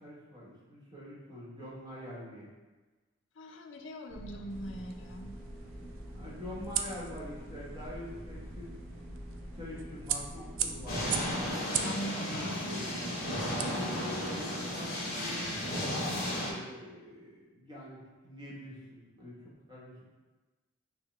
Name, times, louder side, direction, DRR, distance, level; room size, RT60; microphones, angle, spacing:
voice 1, 0.0-2.5 6.1-8.7 9.5-11.0 12.1-12.9 13.2-15.4 16.3-20.0, left 1 dB, 20° right, -6 dB, 1.0 m, -45 dB
voice 2, 3.4-5.3 11.8-12.4, equal, 60° left, 3 dB, 0.4 m, -41 dB
sound 1, 4.1-11.5, equal, 5° left, 0.6 m, -45 dB
sound 2, 4.5-14.4, right 9 dB, 70° right, 0.3 m, -41 dB
sound 3, 10.9-16.5, left 1 dB, 40° left, 1.1 m, -34 dB
6.0 x 2.1 x 3.2 m, 1.2 s
head